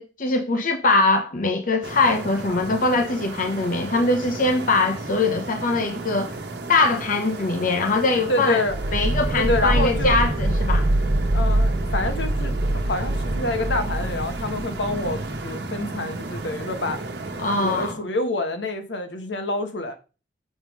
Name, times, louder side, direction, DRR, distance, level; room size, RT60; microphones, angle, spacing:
voice 1, 0.0-6.4 6.7-8.6 8.9-10.9 17.4-18.0, left 3 dB, 50° left, 0.8 m, -22 dB
sound 1, 1.8-17.9, right 2 dB, 65° right, 1.1 m, -34 dB
voice 2, 8.3-8.8 9.4-10.1 11.3-17.0 17.6-19.9, left 1 dB, 85° left, 1.3 m, -27 dB
sound 2, 8.7-15.4, right 1 dB, 25° right, 0.5 m, -24 dB
7.1 x 3.6 x 6.2 m
head